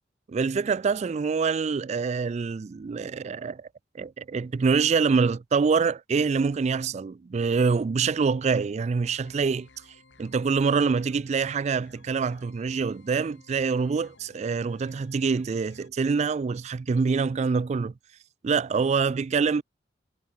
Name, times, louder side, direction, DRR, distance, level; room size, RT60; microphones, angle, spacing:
voice 1, 0.3-3.7 3.9-9.7 10.2-17.9 18.4-19.6, right 5 dB, 40° right, 0.3 m, -25 dB
sound 1, 9.0-15.9, left 3 dB, 80° left, 2.2 m, -56 dB
head